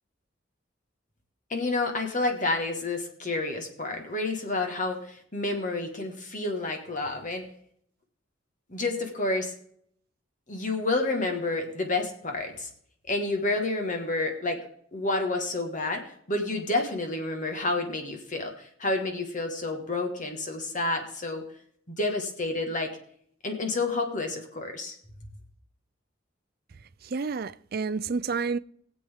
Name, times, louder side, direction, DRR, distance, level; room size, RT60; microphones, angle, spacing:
voice 1, 1.5-7.4 8.7-9.5 10.5-12.7 13.1-14.6 14.9-21.4 22.0-22.9 23.4-25.0, left 2 dB, 40° left, 1.6 m, -29 dB
voice 2, 27.0-28.6, right 4 dB, 50° right, 0.4 m, -29 dB
20.5 x 7.9 x 3.6 m
head